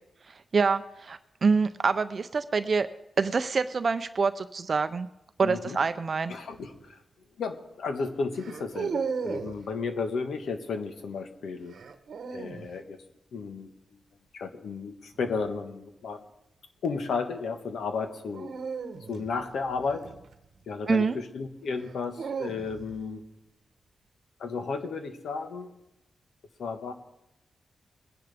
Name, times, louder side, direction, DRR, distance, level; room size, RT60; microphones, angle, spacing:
voice 1, 0.5-2.9 3.2-5.1 5.4-6.3 20.9-21.2, right 4 dB, 40° right, 11 dB, 0.5 m, -26 dB
voice 2, 5.4-5.8 6.3-7.0 7.4-11.7 12.3-13.0 13.3-14.0 14.3-16.3 16.8-18.5 19.1-20.1 20.7-23.2 24.4-25.7 26.6-26.9, left 4 dB, 80° left, 6 dB, 1.4 m, -33 dB
sound 1, 6.5-6.8 8.4-9.6 11.7-12.7 15.1-15.5 18.3-20.7 21.7-23.0, right 5 dB, 65° right, 1.0 m, -36 dB
22.0 x 10.5 x 3.4 m, 0.89 s
wide cardioid pair, 125°, 0 cm